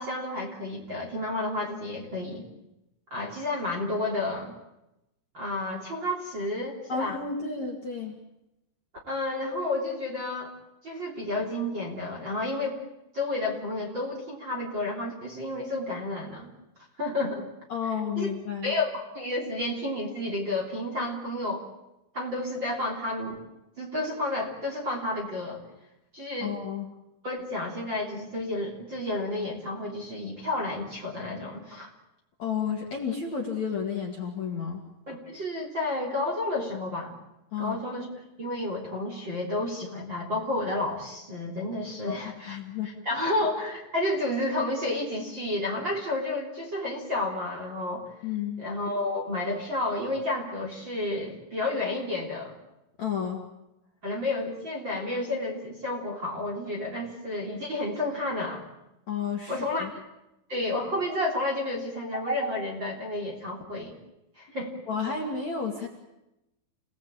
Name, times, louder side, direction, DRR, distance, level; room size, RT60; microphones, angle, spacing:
voice 1, 0.0-2.4 3.1-4.5 5.3-7.2 9.1-10.5 10.8-12.8 13.1-16.5 17.0-17.5 18.2-18.3 18.6-21.6 22.1-23.4 23.8-25.6 26.1-26.5 27.2-31.9 35.1-37.1 37.6-38.1 38.4-42.6 42.8-48.1 48.6-52.5 54.0-58.6 59.5-60.0 60.5-63.9 64.4-64.7, left 2 dB, 25° right, -1 dB, 3.2 m, -31 dB
voice 2, 6.9-8.2 17.7-18.8 26.4-26.9 32.4-34.8 37.5-37.8 42.1-42.9 48.2-48.6 53.0-53.5 59.1-59.9 64.9-65.9, left 6 dB, 45° left, 0 dB, 2.8 m, -31 dB
29.0 x 18.5 x 8.7 m, 0.91 s
omnidirectional pair, 5.9 m